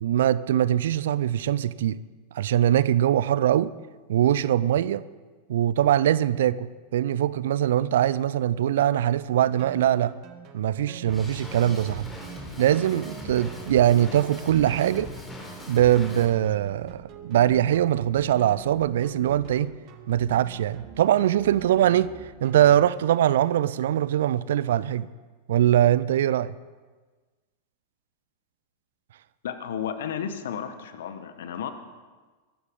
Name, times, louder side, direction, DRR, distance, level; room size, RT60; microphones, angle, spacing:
voice 1, 0.0-2.0 2.3-3.7 4.1-5.0 5.5-10.1 10.5-12.1 12.6-15.1 15.7-19.7 20.1-22.1 22.4-25.1 25.5-26.5, right 11 dB, 60° right, 0.4 m, -22 dB
sound 1, 9.6-23.3, right 7 dB, 40° right, 1.4 m, -46 dB
Drum kit, 11.1-16.2, left 1 dB, 15° left, 3.7 m, -40 dB
voice 2, 29.4-31.7, left 8 dB, 60° left, 1.2 m, -33 dB
22.5 x 12.5 x 3.7 m
figure-of-eight pair, 90°, 0 cm